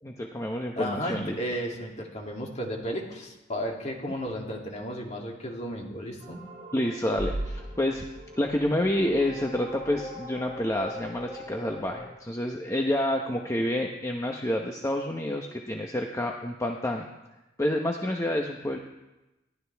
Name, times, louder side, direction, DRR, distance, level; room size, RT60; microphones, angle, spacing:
voice 1, 0.0-1.4 6.7-8.0 8.4-17.1 17.6-18.8, left 1 dB, 15° left, 1 dB, 1.0 m, -28 dB
voice 2, 0.8-6.4, equal, 35° left, -1 dB, 2.8 m, -33 dB
sound 1, 6.2-12.1, equal, 20° right, 7.0 m, -39 dB
30.0 x 12.0 x 3.5 m, 1.0 s
head